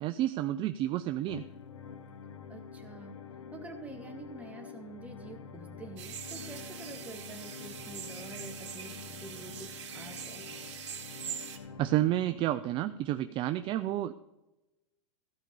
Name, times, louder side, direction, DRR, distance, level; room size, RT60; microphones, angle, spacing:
voice 1, 0.0-1.4 11.8-14.1, right 13 dB, 35° right, 11 dB, 0.5 m, -30 dB
sound 1, 1.2-13.2, left 6 dB, 90° left, 1.1 m, -47 dB
voice 2, 2.5-3.2 3.5-10.5, right 3 dB, 10° right, 2 dB, 2.0 m, -47 dB
sound 2, 6.0-11.6, right 8 dB, 80° right, 2.3 m, -43 dB
15.5 x 5.2 x 6.8 m, 0.99 s
hypercardioid pair, 125°, 15 cm